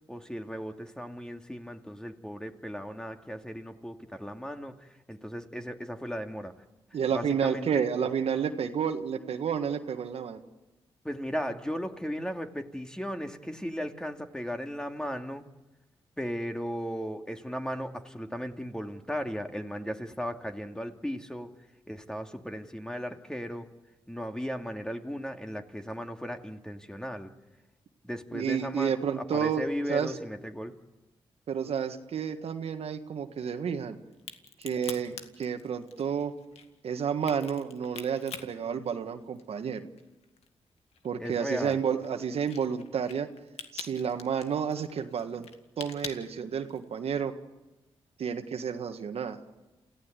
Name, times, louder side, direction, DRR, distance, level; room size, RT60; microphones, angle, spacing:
voice 1, 0.1-6.5 7.1-7.9 11.0-15.5 16.2-21.5 21.9-23.7 24.1-27.3 28.0-30.8 41.2-41.8, equal, 5° left, 5 dB, 2.5 m, -36 dB
voice 2, 6.9-10.4 28.3-30.1 31.5-34.0 34.6-36.3 36.8-39.8 41.0-43.3 43.7-45.5 45.8-47.3 48.2-49.4, right 7 dB, 70° right, 7 dB, 1.6 m, -30 dB
Crack, 34.1-39.6 40.0-47.0, left 6 dB, 75° left, 2.0 m, -45 dB
28.5 x 16.0 x 8.2 m, 1.1 s
supercardioid pair, 45°, 10 cm